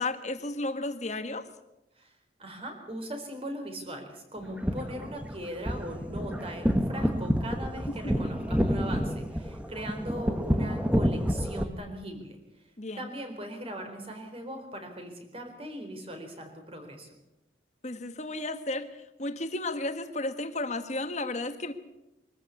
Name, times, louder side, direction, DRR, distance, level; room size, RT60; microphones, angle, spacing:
voice 1, 0.0-1.4 8.0-8.3 12.8-13.0 17.8-18.9 19.2-21.7, left 2 dB, 40° left, 8 dB, 1.7 m, -33 dB
voice 2, 2.4-12.4 12.9-17.1, right 1 dB, 35° right, 5 dB, 4.3 m, -40 dB
sound 1, 4.4-11.6, equal, 10° right, 1.3 m, -29 dB
24.0 x 14.5 x 8.5 m, 0.94 s
head